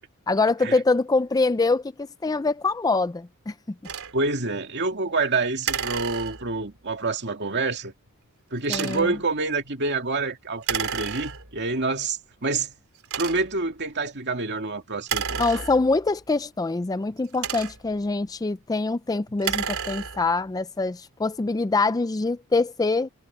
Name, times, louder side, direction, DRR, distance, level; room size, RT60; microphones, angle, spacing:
voice 1, 0.3-3.5 8.7-9.1 15.4-23.1, left 3 dB, 15° left, 0.4 m, -24 dB
sound 1, 3.8-4.1 5.6-6.7 8.6-9.2 10.6-11.6 12.3-12.4 13.0-13.7 15.0-16.1 17.1-18.0 19.3-20.4, right 7 dB, 65° right, 4.4 m, -31 dB
voice 2, 4.1-7.9 8.5-12.7 13.2-15.4, right 3 dB, 50° right, 2.3 m, -27 dB
head